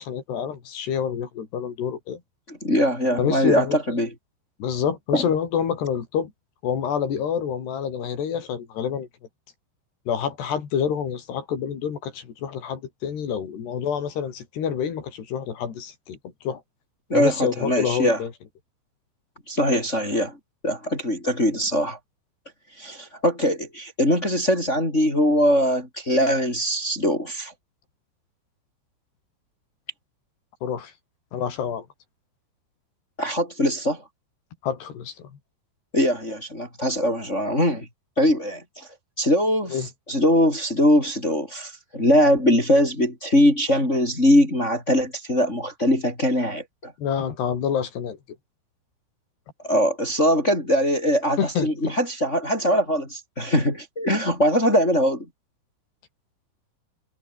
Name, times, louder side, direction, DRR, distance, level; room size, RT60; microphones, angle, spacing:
voice 1, 0.0-2.2 3.2-3.8 4.6-6.3 6.6-9.1 10.1-16.2 16.5-16.6 17.1-18.3 30.6-30.9 31.3-31.9 34.6-35.1 39.7-39.9 47.0-48.2 51.4-51.9, left 7 dB, 70° left, 5.5 m, -27 dB
voice 2, 2.5-4.1 5.1-5.3 17.1-18.2 19.5-20.3 20.6-22.0 22.8-27.5 33.2-34.0 35.9-37.9 38.2-38.9 39.2-39.8 40.1-46.9 49.6-55.2, equal, 15° left, 6.5 m, -21 dB
omnidirectional pair, 5.1 m